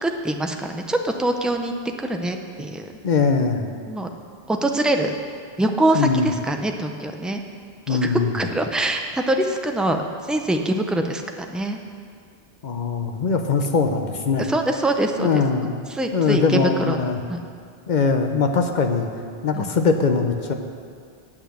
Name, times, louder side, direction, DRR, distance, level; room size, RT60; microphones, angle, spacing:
voice 1, 0.0-2.9 3.9-4.1 4.5-5.1 5.6-7.4 7.9-11.8 14.5-15.4 15.9-17.0 17.3-17.4 19.5-19.7, right 1 dB, ahead, 4 dB, 0.4 m, -24 dB
voice 2, 3.0-3.7 5.9-6.3 7.9-8.4 12.6-14.4 15.2-15.7 16.1-17.2 17.9-19.1 19.4-20.5, left 5 dB, 50° left, 5 dB, 0.8 m, -21 dB
8.8 x 6.1 x 8.2 m, 2.2 s
omnidirectional pair, 1.0 m